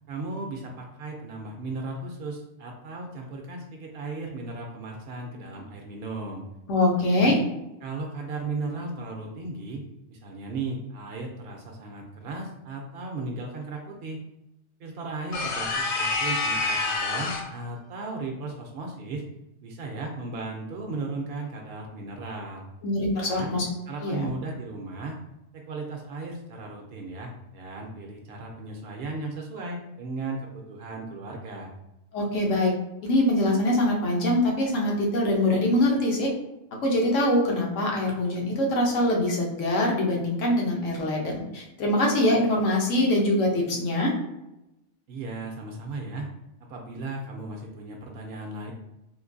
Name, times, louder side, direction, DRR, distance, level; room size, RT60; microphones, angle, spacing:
voice 1, 0.1-6.4 7.1-7.4 7.8-9.8 10.1-14.2 14.8-19.2 19.6-22.6 23.2-23.5 23.9-25.2 25.5-31.7 45.1-46.3 46.7-48.7, right 3 dB, 65° right, 1 dB, 0.7 m, -36 dB
voice 2, 6.7-7.4 22.8-23.7 24.0-24.3 32.1-32.7 33.0-36.3 36.8-44.1, left 1 dB, 80° left, -1 dB, 1.2 m, -23 dB
sound 1, 15.3-17.6, left 3 dB, 60° left, 0.6 m, -27 dB
3.6 x 2.6 x 2.6 m, 0.91 s
omnidirectional pair, 1.3 m